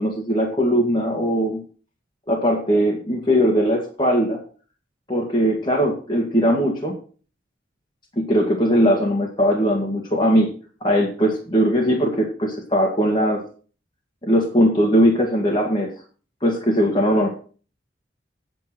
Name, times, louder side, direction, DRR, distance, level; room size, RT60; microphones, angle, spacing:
voice 1, 0.0-1.6 2.3-4.4 5.1-7.0 8.2-10.5 10.8-13.4 14.2-15.9 16.4-17.3, equal, 25° left, -1 dB, 1.8 m, -20 dB
8.6 x 8.3 x 6.0 m, 0.40 s
head